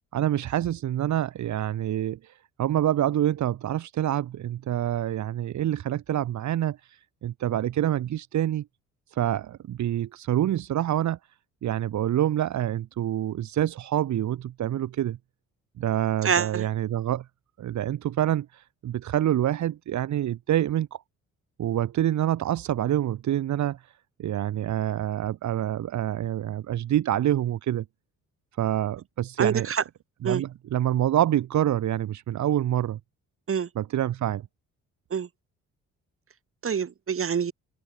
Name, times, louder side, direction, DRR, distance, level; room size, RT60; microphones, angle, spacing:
voice 1, 0.1-8.6 9.1-11.2 11.6-15.2 15.8-17.3 17.6-21.0 21.6-23.9 24.2-27.8 28.6-29.7 30.2-33.0 33.8-34.4, right 12 dB, 70° right, 2.1 m, -26 dB
voice 2, 16.2-16.7 29.4-29.8 30.2-30.4 33.5-33.7 35.1-35.3 36.6-37.5, right 7 dB, 45° right, 4.6 m, -26 dB
cardioid pair, 90°, 30 cm